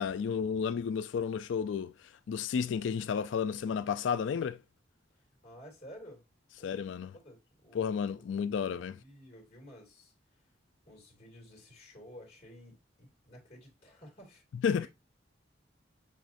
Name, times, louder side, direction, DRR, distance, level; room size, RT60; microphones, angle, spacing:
voice 1, 0.0-1.9 2.3-4.6 6.6-7.1 7.7-9.0 14.6-14.9, left 7 dB, 75° left, 0.3 m, -32 dB
voice 2, 5.1-6.2 6.6-8.3 8.7-10.5 10.9-14.9, equal, 35° left, 2.1 m, -54 dB
6.3 x 3.1 x 2.6 m
head